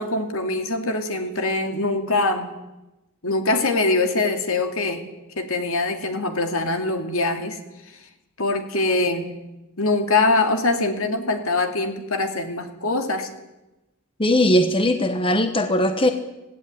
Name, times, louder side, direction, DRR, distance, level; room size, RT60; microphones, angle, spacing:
voice 1, 0.0-2.5 3.2-5.1 5.4-7.6 8.4-9.3 9.8-13.3, left 2 dB, 70° left, 5 dB, 2.6 m, -23 dB
voice 2, 14.2-16.1, left 1 dB, 25° left, 7 dB, 1.2 m, -19 dB
17.0 x 16.5 x 9.5 m, 1.0 s
head